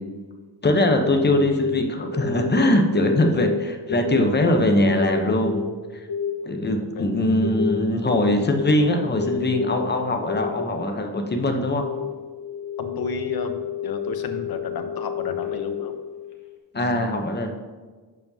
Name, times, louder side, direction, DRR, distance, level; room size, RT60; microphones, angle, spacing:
voice 1, 0.6-5.6 5.9-6.1 6.5-11.8 16.7-17.5, left 1 dB, 25° left, 4 dB, 0.7 m, -21 dB
sound 1, 0.9-16.5, left 7 dB, 75° left, 1.3 m, -30 dB
voice 2, 12.8-16.0, left 4 dB, 55° left, 7 dB, 0.8 m, -32 dB
11.0 x 7.1 x 2.7 m, 1.4 s
wide cardioid pair, 175°, 43 cm